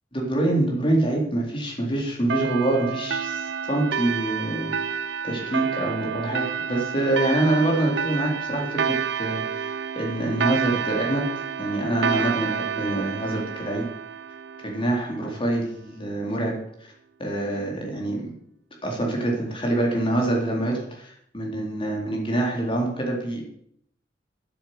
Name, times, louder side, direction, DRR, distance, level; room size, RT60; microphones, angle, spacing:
voice 1, 0.1-4.7 5.2-11.3 11.6-13.9 14.6-16.5 17.2-18.3 18.8-23.4, right 1 dB, 30° left, 0 dB, 3.6 m, -25 dB
sound 1, 2.3-15.4, right 7 dB, 70° right, 0.5 m, -29 dB
9.8 x 8.2 x 7.8 m, 0.69 s
head